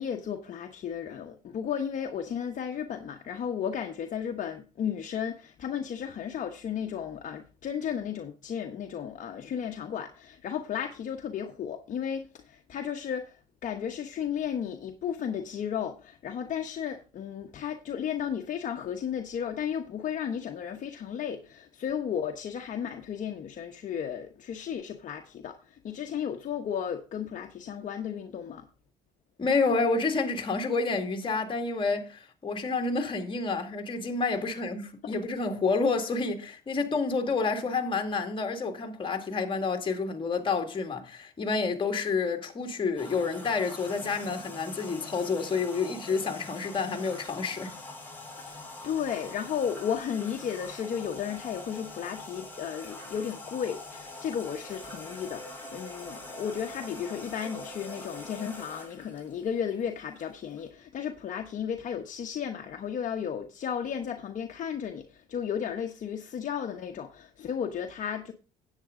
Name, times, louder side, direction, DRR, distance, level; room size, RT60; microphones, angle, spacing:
voice 1, 0.0-28.7 48.4-68.3, left 8 dB, 50° left, 1.1 m, -34 dB
voice 2, 29.4-47.7, left 4 dB, 30° left, 2.0 m, -29 dB
sound 1, 43.0-60.7, left 2 dB, 10° left, 4.9 m, -44 dB
10.0 x 8.4 x 3.8 m
cardioid pair, 110°, 17 cm